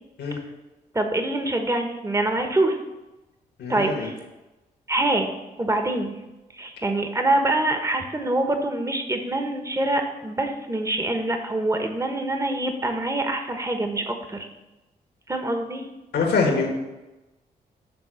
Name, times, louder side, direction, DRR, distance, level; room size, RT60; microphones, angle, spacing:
voice 1, 0.9-2.8 3.7-4.1 4.9-6.2 6.5-14.5 15.3-15.9, right 2 dB, 15° right, 5 dB, 1.2 m, -25 dB
voice 2, 3.6-4.1 16.1-16.7, left 4 dB, 75° left, 1 dB, 1.7 m, -23 dB
8.6 x 3.8 x 6.3 m, 1.0 s
supercardioid pair, 50°, 18 cm